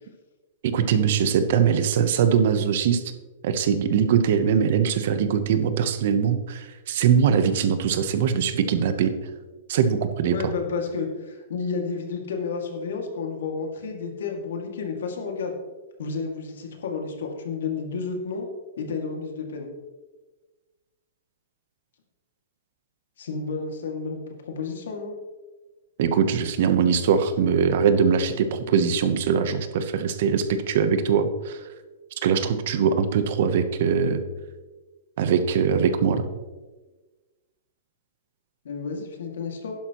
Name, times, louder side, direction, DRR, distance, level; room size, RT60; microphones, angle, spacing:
voice 1, 0.6-3.0 3.4-9.1 9.7-10.5 26.0-31.6 32.2-34.2 35.2-36.3, right 7 dB, 45° right, 10 dB, 0.9 m, -22 dB
voice 2, 10.3-15.5 16.0-18.5 18.8-19.7 23.2-24.2 24.4-25.1 38.6-39.7, left 5 dB, 75° left, 2 dB, 2.2 m, -31 dB
11.5 x 10.5 x 3.1 m, 1.2 s
hypercardioid pair, 175°, 0 cm